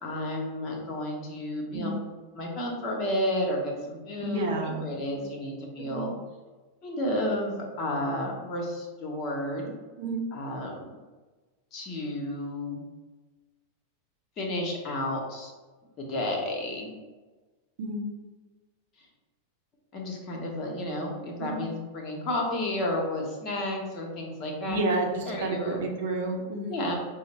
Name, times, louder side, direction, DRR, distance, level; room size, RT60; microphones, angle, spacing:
voice 1, 0.0-2.0 2.3-6.1 6.8-9.7 10.3-10.9 11.7-12.8 14.4-15.5 16.0-16.9 19.9-24.8 25.2-25.8 26.7-27.0, left 1 dB, 35° left, 1 dB, 1.0 m, -31 dB
voice 2, 4.2-4.9 5.1-5.3 5.8-6.1 10.0-10.2 17.8-18.0 21.4-21.6 24.7-26.8, right 2 dB, 55° right, 1 dB, 0.8 m, -30 dB
5.5 x 2.0 x 4.1 m, 1.3 s
figure-of-eight pair, 90°, 0 cm